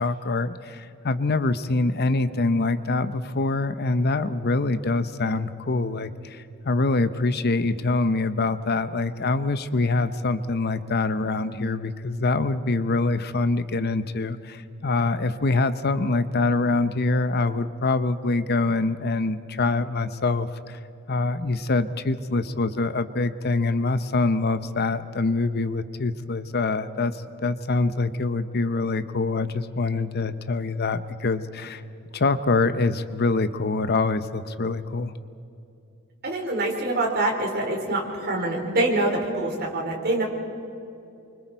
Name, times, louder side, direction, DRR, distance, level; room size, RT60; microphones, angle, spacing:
voice 1, 0.0-20.8 21.1-31.8 32.1-35.1, left 3 dB, 50° left, 12 dB, 0.8 m, -25 dB
voice 2, 36.2-40.2, right 2 dB, 50° right, -1 dB, 4.6 m, -25 dB
29.0 x 25.0 x 4.6 m, 2.7 s
head